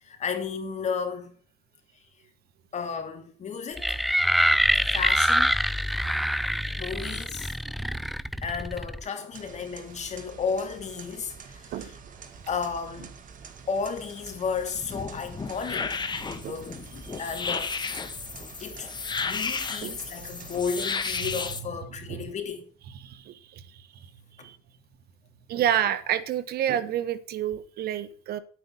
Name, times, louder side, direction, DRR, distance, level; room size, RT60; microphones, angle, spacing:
voice 1, 0.0-1.3 2.7-4.0 4.7-5.6 6.8-7.5 8.4-11.9 12.5-13.1 13.7-16.0 16.5-18.0 18.6-18.9 19.2-22.6, left 5 dB, 45° left, 3.1 m, -33 dB
sound 1, 3.8-9.0, equal, ahead, 0.5 m, -25 dB
sound 2, 9.3-21.6, right 6 dB, 50° right, 2.1 m, -47 dB
sound 3, 14.7-21.6, left 5 dB, 25° left, 1.5 m, -33 dB
voice 2, 22.9-23.8 24.4-24.6 25.5-28.4, right 10 dB, 65° right, 1.3 m, -29 dB
11.5 x 9.1 x 5.6 m
cardioid pair, 110°, 17 cm